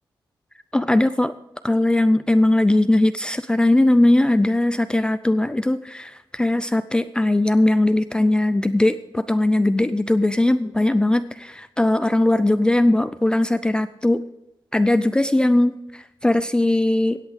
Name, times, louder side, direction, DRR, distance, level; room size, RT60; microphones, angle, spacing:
voice 1, 0.7-1.3 1.6-14.3 14.7-17.2, left 1 dB, 10° left, 11 dB, 0.4 m, -19 dB
17.0 x 8.3 x 4.9 m, 0.89 s
wide cardioid pair, 130°, 9 cm